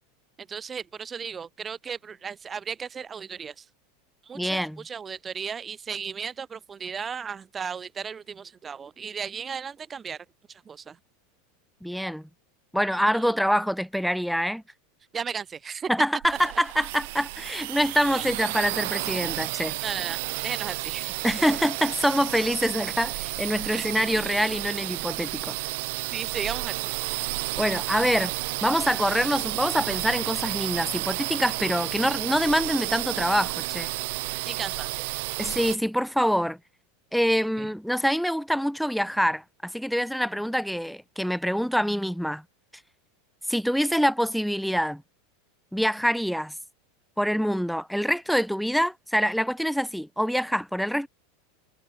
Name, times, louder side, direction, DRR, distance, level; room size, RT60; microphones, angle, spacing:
voice 1, 0.4-3.6 4.2-11.0 13.1-13.3 15.1-15.9 18.1-18.3 19.8-21.1 21.5-21.6 23.7-23.8 26.1-27.2 34.4-35.0 35.4-35.5 37.6-37.7, right 6 dB, 20° right, 3.3 m, -35 dB
voice 2, 4.3-4.8 11.8-12.2 12.7-14.6 15.9-19.8 21.2-25.6 27.6-28.3 28.6-33.9 35.4-36.6 37.1-42.4 43.5-45.0 45.7-46.5 47.2-51.1, equal, ahead, 1.8 m, -25 dB
sound 1, 16.2-35.8, right 23 dB, 65° right, 1.4 m, -31 dB
supercardioid pair, 135°, 0 cm